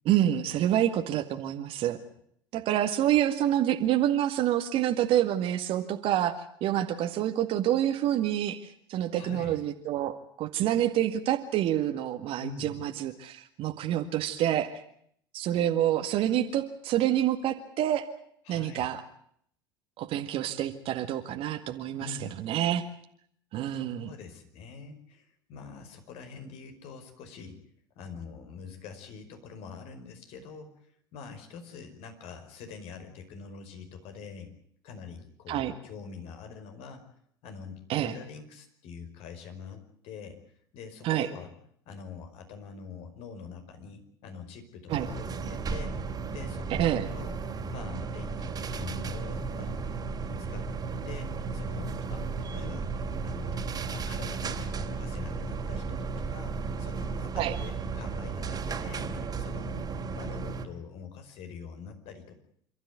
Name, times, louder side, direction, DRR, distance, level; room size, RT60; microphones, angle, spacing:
voice 1, 0.1-2.0 2.5-6.3 6.6-14.8 15.3-18.1 18.5-19.0 20.0-22.8 23.5-24.1 35.5-35.7 37.9-38.2 41.0-41.3 44.9-45.1 46.7-47.1 57.4-57.5, right 11 dB, 50° right, 6 dB, 1.9 m, -27 dB
voice 2, 9.1-9.6 12.4-12.8 18.5-18.9 22.0-22.4 23.7-27.6 28.0-34.5 34.8-37.0 37.4-40.4 40.7-41.5 41.9-45.9 46.3-47.4 47.7-49.9 50.5-52.9 53.2-59.9 60.1-62.4, left 5 dB, 55° left, 7 dB, 5.1 m, -45 dB
sound 1, 44.9-60.6, right 4 dB, 30° right, 3.0 m, -34 dB
27.5 x 13.5 x 9.6 m, 0.67 s
hypercardioid pair, 75°, 12 cm